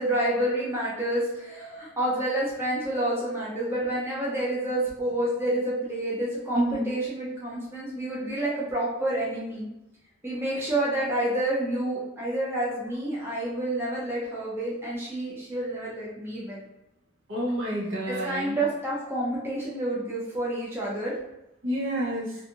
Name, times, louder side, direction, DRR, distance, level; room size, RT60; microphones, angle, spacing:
voice 1, 0.0-9.7 10.2-16.6 18.0-21.2, right 1 dB, 10° right, -7 dB, 0.6 m, -29 dB
voice 2, 17.3-18.6 21.6-22.3, right 1 dB, 60° right, -4 dB, 0.7 m, -28 dB
2.6 x 2.3 x 2.8 m, 0.89 s
head